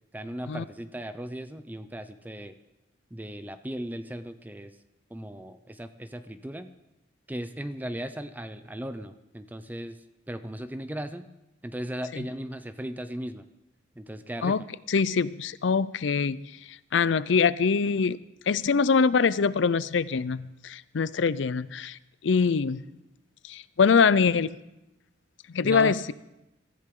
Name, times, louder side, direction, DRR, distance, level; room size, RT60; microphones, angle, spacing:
voice 1, 0.1-2.5 3.1-4.7 5.1-6.7 7.3-10.0 10.3-11.3 11.6-13.5 14.0-14.6 25.6-26.1, right 1 dB, 10° right, 10 dB, 0.6 m, -37 dB
voice 2, 14.9-16.4 16.9-18.2 18.5-22.0 22.2-22.8 23.5-24.6 25.5-26.1, left 5 dB, 70° left, 17 dB, 0.5 m, -23 dB
23.0 x 14.0 x 3.8 m, 0.92 s
head